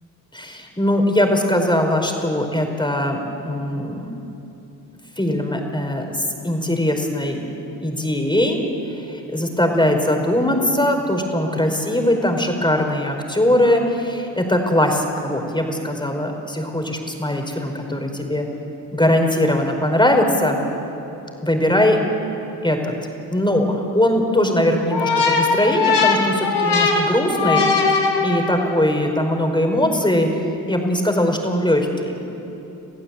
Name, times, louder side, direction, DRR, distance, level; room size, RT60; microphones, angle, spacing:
voice 1, 0.3-4.1 5.2-7.4 7.8-8.6 8.9-18.5 18.9-20.6 21.4-22.0 22.6-22.9 23.3-27.6 27.9-30.3 30.6-32.2, left 1 dB, 10° left, 3 dB, 5.0 m, -20 dB
sound 1, 24.9-28.8, left 4 dB, 60° left, 4.5 m, -19 dB
28.5 x 15.5 x 8.6 m, 2.9 s
hypercardioid pair, 45°, 47 cm